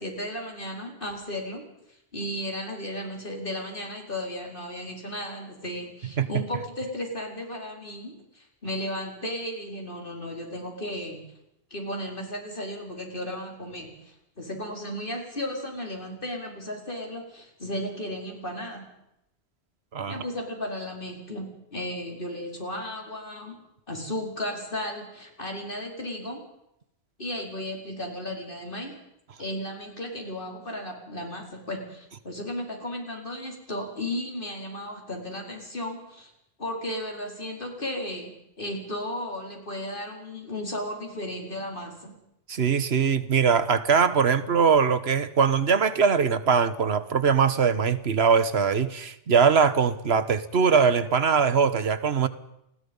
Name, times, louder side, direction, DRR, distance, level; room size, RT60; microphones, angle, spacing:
voice 1, 0.0-1.6 2.1-11.2 11.7-18.8 20.1-23.5 23.9-26.4 27.2-28.9 29.4-36.3 36.6-42.2, left 1 dB, 55° left, 5.0 m, -34 dB
voice 2, 19.9-20.2 42.5-52.3, right 6 dB, 75° right, 1.4 m, -22 dB
29.5 x 20.0 x 5.5 m
omnidirectional pair, 1.1 m